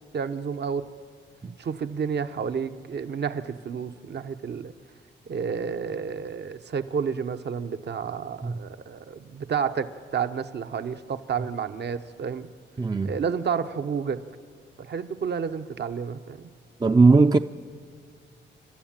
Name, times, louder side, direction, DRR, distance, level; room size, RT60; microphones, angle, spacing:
voice 1, 0.1-0.8 1.6-4.7 5.3-12.5 13.0-14.2 14.8-16.5, right 6 dB, 55° right, 1.0 m, -30 dB
voice 2, 12.8-13.1 16.8-17.4, right 3 dB, 20° right, 0.5 m, -18 dB
29.5 x 12.5 x 8.9 m
cardioid pair, 70°, 20 cm